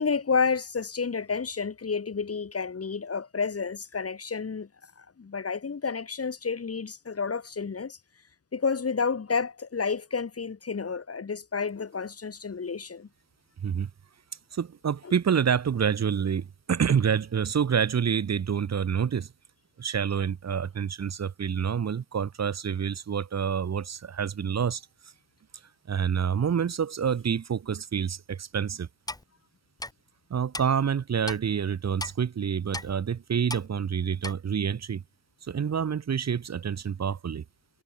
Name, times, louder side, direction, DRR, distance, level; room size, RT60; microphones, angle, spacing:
voice 1, 0.0-4.7 5.0-8.0 8.5-13.1 15.0-15.1, left 5 dB, 45° left, 2.9 m, -30 dB
voice 2, 14.5-19.3 19.8-24.8 25.9-28.9 30.3-35.0 35.4-37.4, right 7 dB, 55° right, 1.0 m, -27 dB
Clock, 29.1-29.2 29.8-29.9 30.5-30.7 31.3-31.4 32.0-32.1 32.7-32.9 33.5-33.7 34.2-34.3, left 2 dB, 10° left, 0.8 m, -35 dB
wide cardioid pair, 100°, 32 cm